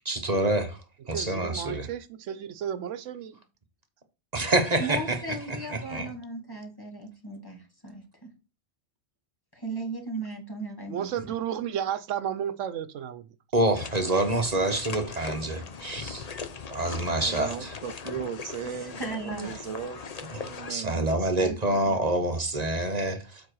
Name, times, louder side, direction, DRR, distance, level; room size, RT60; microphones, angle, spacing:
voice 1, 0.0-0.8 1.1-1.9 4.3-5.2 5.7-6.1 13.5-16.2 16.7-17.7 20.3-23.4, right 2 dB, 35° right, 1.3 m, -27 dB
voice 2, 1.1-3.4 10.9-13.3, right 9 dB, 85° right, 1.0 m, -33 dB
voice 3, 4.8-8.3 9.5-11.1 18.6-19.5 21.4-22.0, right 2 dB, 20° left, 2.1 m, -37 dB
sound 1, 13.8-20.7, left 5 dB, 40° left, 0.7 m, -39 dB
voice 4, 17.0-20.0 20.3-21.8 22.2-22.3, right 7 dB, 60° right, 0.3 m, -38 dB
7.5 x 4.7 x 4.7 m
omnidirectional pair, 1.2 m